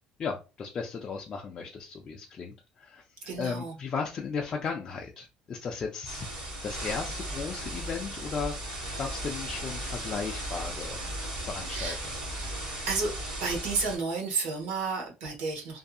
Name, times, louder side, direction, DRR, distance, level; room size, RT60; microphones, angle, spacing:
voice 1, 0.2-6.3 6.6-11.0 11.4-11.9, left 5 dB, 25° left, -1 dB, 0.3 m, -36 dB
voice 2, 3.3-3.7 11.7-12.0 12.9-13.1 13.4-15.8, right 4 dB, 70° right, 2 dB, 0.9 m, -31 dB
sound 1, 6.1-14.0, right 1 dB, 35° right, 1.5 m, -36 dB
2.6 x 2.6 x 2.3 m, 0.30 s
cardioid pair, 175°, 2 cm